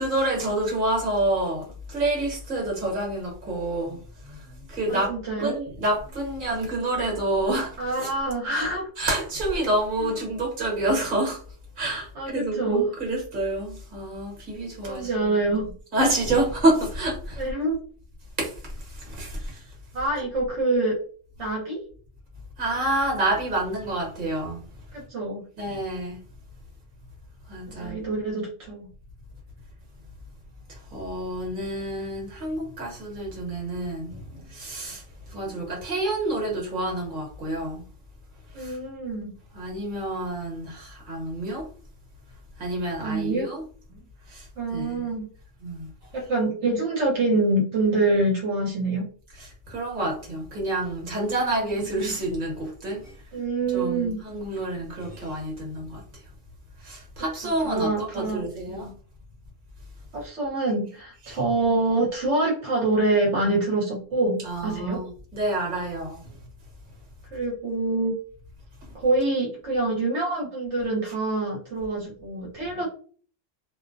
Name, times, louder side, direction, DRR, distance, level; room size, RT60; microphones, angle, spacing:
voice 1, 0.0-5.1 5.4-8.1 8.5-8.7 9.0-11.4 11.8-15.5 15.9-17.4 18.4-19.7 22.6-24.6 25.6-26.2 27.5-28.0 30.7-37.8 38.5-38.8 39.5-41.7 42.6-43.6 44.3-45.0 45.6-45.9 49.3-53.2 53.7-56.0 56.8-58.9 61.2-61.4 64.4-66.3 72.6-72.8, right 1 dB, 45° right, 1.1 m, -28 dB
voice 2, 4.9-5.5 7.8-8.8 10.0-10.1 12.2-12.8 14.9-15.7 17.4-17.8 19.9-20.9 21.4-21.8 24.9-25.4 27.8-28.9 38.5-39.3 43.0-43.5 44.6-45.3 46.1-49.1 51.5-52.1 53.3-54.2 57.6-58.9 60.1-65.0 67.3-68.1 68.9-72.8, right 2 dB, 70° right, 1.0 m, -26 dB
2.5 x 2.0 x 2.5 m
omnidirectional pair, 1.2 m